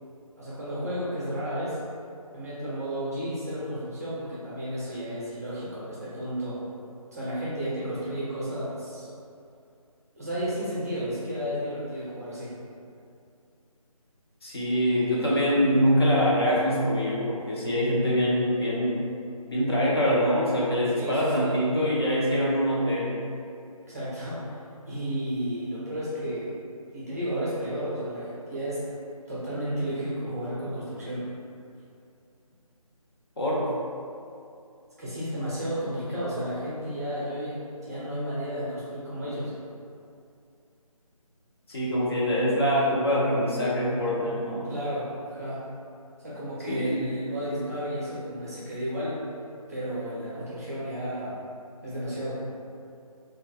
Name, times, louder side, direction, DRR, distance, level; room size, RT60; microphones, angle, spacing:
voice 1, 0.4-1.8 2.3-6.6 7.1-9.1 10.1-12.5 21.0-21.6 23.9-24.6 24.9-26.5 26.9-28.9 29.3-31.3 35.0-39.5 44.7-45.7 46.2-49.2 49.7-51.4 51.8-52.5, equal, 25° right, -10 dB, 0.6 m, -32 dB
voice 2, 14.4-19.0 19.5-23.3 33.4-33.7 41.7-44.7 46.7-46.9, equal, 45° left, -6 dB, 0.6 m, -24 dB
2.6 x 2.2 x 3.0 m, 2.5 s
figure-of-eight pair, 160°, 19 cm